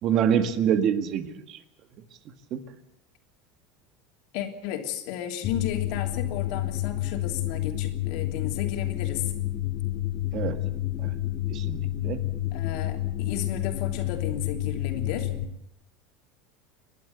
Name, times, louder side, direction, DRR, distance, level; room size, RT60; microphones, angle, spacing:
voice 1, 0.0-1.6 2.5-2.6 10.3-10.6 11.0-11.1 11.5-12.2, right 8 dB, 40° right, 9 dB, 1.8 m, -26 dB
voice 2, 4.3-9.3 12.5-15.3, left 10 dB, 60° left, 4 dB, 3.1 m, -33 dB
sound 1, 5.4-15.4, left 14 dB, 40° left, 2.4 m, -29 dB
29.0 x 11.5 x 8.1 m, 0.80 s
supercardioid pair, 145°, 0 cm